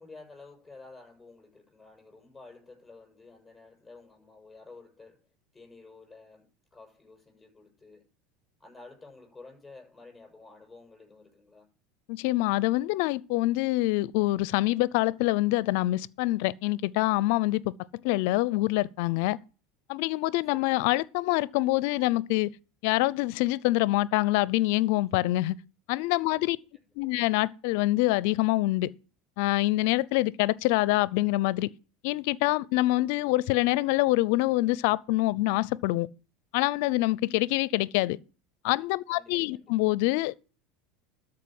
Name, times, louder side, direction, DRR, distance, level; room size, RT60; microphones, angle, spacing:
voice 1, 0.0-5.2 5.5-8.0 8.6-11.7 20.5-20.8 26.3-27.1 39.1-39.7, left 3 dB, 10° left, 6.9 m, -51 dB
voice 2, 12.1-17.7 18.0-19.4 19.9-22.5 22.8-25.6 25.9-26.6 27.0-28.9 29.4-31.7 32.0-36.1 36.5-38.2 38.6-40.3, left 18 dB, 70° left, 0.5 m, -25 dB
13.0 x 4.9 x 7.7 m
supercardioid pair, 110°, 0 cm